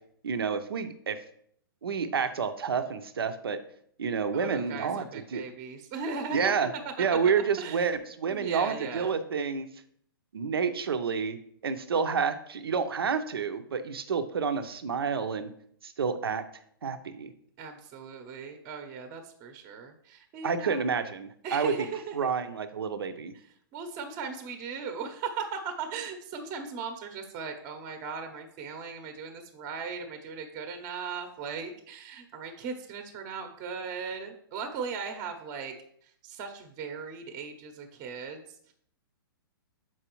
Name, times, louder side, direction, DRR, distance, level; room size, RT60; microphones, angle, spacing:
voice 1, 0.2-1.2 1.8-3.6 4.0-5.0 5.3-5.4 6.3-6.7 7.0-9.7 10.3-11.4 11.6-15.5 15.8-16.4 16.8-17.3 20.4-21.7 22.1-23.3, right 6 dB, 85° right, 9 dB, 0.6 m, -29 dB
voice 2, 4.3-6.5 7.0-7.2 7.6-7.9 8.3-9.1 17.6-20.8 21.4-22.3 23.7-35.7 36.0-38.7, right 5 dB, 35° right, 6 dB, 0.8 m, -38 dB
7.0 x 4.6 x 3.0 m, 0.65 s
hypercardioid pair, 130°, 12 cm